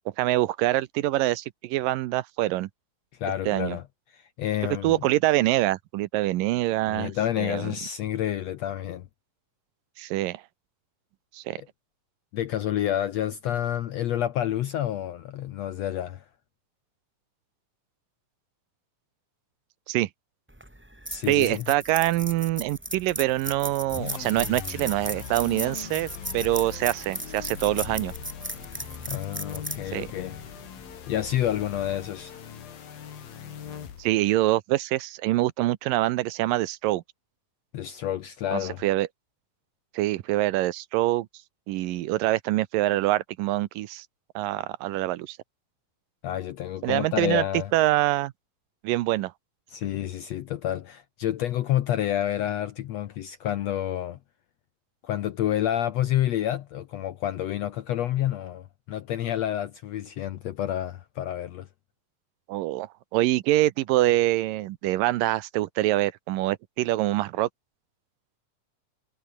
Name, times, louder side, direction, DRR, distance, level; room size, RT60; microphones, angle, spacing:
voice 1, 0.2-2.7 3.5-3.8 4.8-7.1 7.4-7.7 10.0-10.4 11.3-11.6 19.9-20.1 21.3-28.1 29.9-30.1 34.0-37.0 38.5-39.1 39.9-41.3 41.7-44.1 44.4-45.4 46.8-47.4 47.7-48.3 48.8-49.3 62.5-67.5, right 16 dB, 80° right, 2.4 m, -25 dB
voice 2, 3.2-3.8 4.1-5.0 6.9-9.1 11.6-11.7 12.3-16.2 21.1-21.7 29.1-30.4 31.1-32.4 37.7-38.8 46.2-47.7 49.7-54.2 55.0-61.7, left 11 dB, 70° left, 1.6 m, -29 dB
sound 1, 20.5-30.9, right 1 dB, 5° right, 1.2 m, -37 dB
sound 2, 23.9-34.3, left 8 dB, 90° left, 4.6 m, -40 dB
omnidirectional pair, 4.0 m